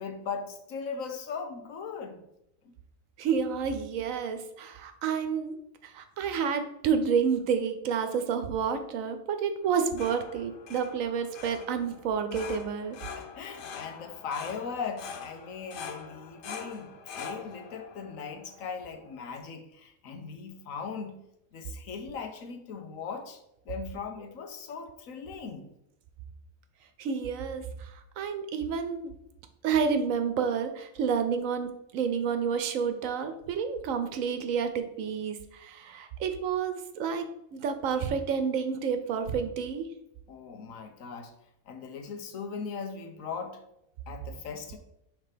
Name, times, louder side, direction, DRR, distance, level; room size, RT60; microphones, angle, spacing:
voice 1, 0.0-2.2 2.6-2.7 13.0-21.2 21.5-23.4 23.6-25.7 40.3-41.3 41.7-43.6 44.1-44.8, left 5 dB, 75° left, 6 dB, 1.2 m, -39 dB
voice 2, 3.2-5.6 5.8-13.0 27.0-29.1 29.6-39.9, right 6 dB, 80° right, 8 dB, 1.1 m, -30 dB
sound 1, 9.6-19.4, left 6 dB, 60° left, 0.6 m, -44 dB
5.9 x 3.2 x 4.9 m, 0.82 s
omnidirectional pair, 1.4 m